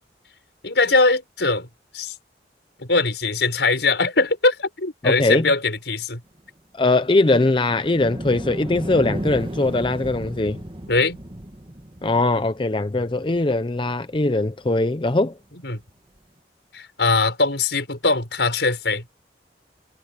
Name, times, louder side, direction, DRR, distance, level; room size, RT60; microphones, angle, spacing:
voice 1, 0.6-1.7 1.9-2.1 2.8-6.2 10.9-11.2 15.6-15.8 16.7-19.0, left 3 dB, 80° left, 5.1 m, -21 dB
voice 2, 5.0-5.5 6.7-10.6 12.0-15.3, left 2 dB, 30° left, 0.6 m, -21 dB
sound 1, 7.6-14.0 14.6-14.7 16.2-16.3, right 1 dB, 30° right, 1.6 m, -34 dB
head